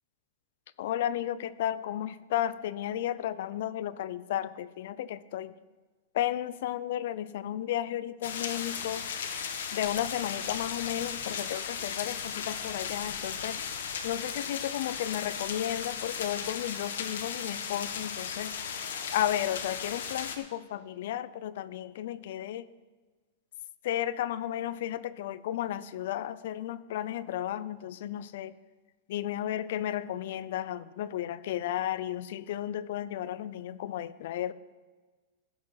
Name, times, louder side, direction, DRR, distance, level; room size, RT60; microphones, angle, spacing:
voice 1, 0.8-5.5 6.1-9.1 9.7-13.6 14.0-18.6 19.1-22.7 23.8-28.5 29.1-34.5, left 12 dB, 60° left, 17 dB, 0.5 m, -33 dB
sound 1, 8.2-20.4, left 7 dB, 85° left, 1.2 m, -36 dB
15.0 x 6.2 x 5.7 m, 1.3 s
supercardioid pair, 155°, 0 cm